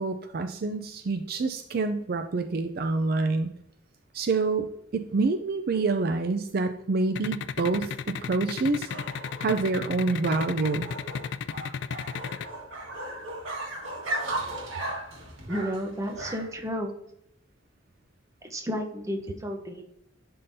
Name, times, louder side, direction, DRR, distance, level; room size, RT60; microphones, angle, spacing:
voice 1, 0.0-3.5 4.1-4.7 4.9-10.9, right 3 dB, 50° right, 7 dB, 0.4 m, -27 dB
sound 1, 7.2-12.5, left 7 dB, 60° left, 0.3 m, -33 dB
sound 2, 7.4-16.7, right 1 dB, 85° right, 1.7 m, -37 dB
voice 2, 15.5-16.9 18.4-19.8, equal, 15° right, 3 dB, 0.8 m, -32 dB
10.5 x 3.8 x 2.7 m, 0.76 s
head